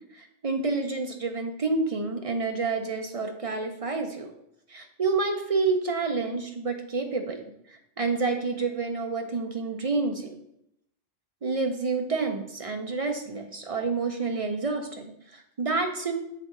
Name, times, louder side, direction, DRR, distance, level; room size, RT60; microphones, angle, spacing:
voice 1, 0.1-4.3 4.7-10.4 11.4-16.2, right 3 dB, 45° right, 5 dB, 0.5 m, -29 dB
6.5 x 3.9 x 3.7 m, 0.79 s
omnidirectional pair, 1.1 m